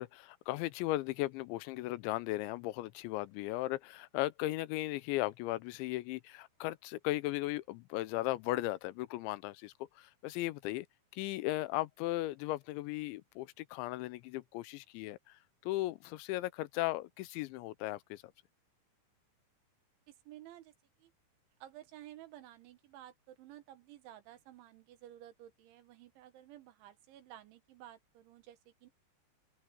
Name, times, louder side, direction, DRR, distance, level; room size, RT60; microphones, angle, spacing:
voice 1, 0.0-10.9 11.1-18.2, left 17 dB, 90° left, 3.0 m, -37 dB
voice 2, 20.1-20.7 21.0-21.1 21.6-28.9, right 13 dB, 85° right, 4.1 m, -54 dB
omnidirectional pair, 5.3 m